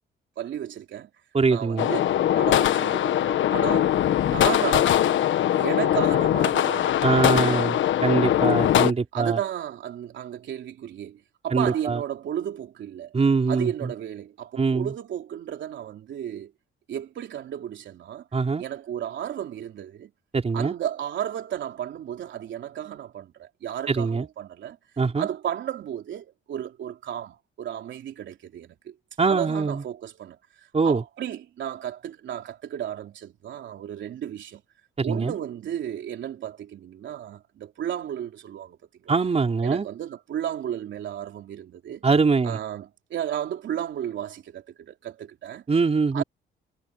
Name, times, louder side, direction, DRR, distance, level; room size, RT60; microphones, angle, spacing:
voice 1, 0.4-1.1 1.5-3.9 4.2-5.0 5.5-7.6 9.1-13.1 13.5-16.5 16.9-18.2 18.6-20.1 20.5-24.8 25.2-28.9 29.2-34.6 35.0-38.8 39.0-39.2 39.6-42.0 42.4-45.6 46.1-46.2, right 10 dB, 70° right, 3.3 m, -33 dB
voice 2, 1.3-1.9 7.0-9.4 11.5-12.0 13.1-13.9 14.6-14.9 18.3-18.6 20.3-20.7 23.9-24.3 25.0-25.3 29.2-29.8 30.7-31.0 35.0-35.4 39.1-39.9 42.0-42.6 45.7-46.2, right 4 dB, 30° right, 4.5 m, -23 dB
sound 1, 1.8-8.9, left 11 dB, 75° left, 1.4 m, -21 dB
cardioid pair, 90°, 20 cm